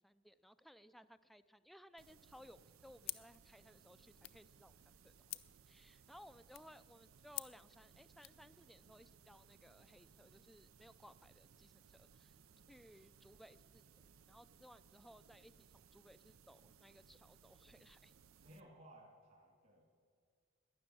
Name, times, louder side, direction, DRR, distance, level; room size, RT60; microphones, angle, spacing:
voice 1, 0.0-4.7 5.0-12.4 12.7-18.1, equal, ahead, 12 dB, 0.3 m, -61 dB
sound 1, 2.0-18.6, right 6 dB, 90° right, 0.6 m, -65 dB
sound 2, 3.0-8.4, left 18 dB, 70° left, 0.5 m, -52 dB
voice 2, 18.4-19.8, right 1 dB, 45° right, 1 dB, 2.2 m, -60 dB
12.5 x 10.5 x 9.0 m, 2.1 s
head